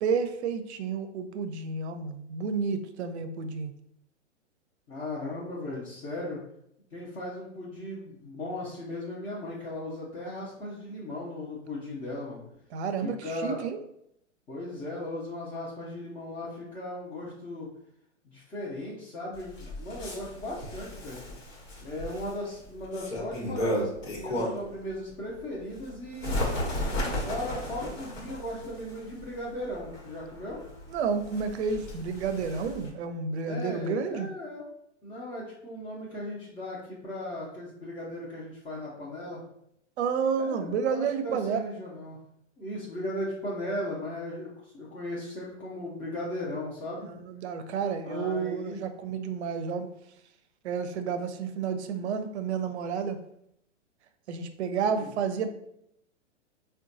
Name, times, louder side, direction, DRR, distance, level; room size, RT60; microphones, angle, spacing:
voice 1, 0.0-3.7 12.7-13.8 30.9-34.3 40.0-41.6 47.0-49.9 50.6-53.2 54.3-55.5, right 6 dB, 65° right, 8 dB, 0.5 m, -30 dB
voice 2, 4.9-6.4 6.9-12.4 13.0-13.6 14.5-17.7 18.2-21.2 21.8-26.5 27.2-30.6 33.4-34.7 35.0-39.4 40.4-42.2 42.6-47.1 48.0-48.8 54.8-55.1, left 1 dB, 15° left, -7 dB, 0.5 m, -37 dB
Bird, 19.3-24.8 25.2-32.9, left 1 dB, 80° left, 1.1 m, -35 dB
3.7 x 2.2 x 2.6 m, 0.75 s
hypercardioid pair, 120°, 37 cm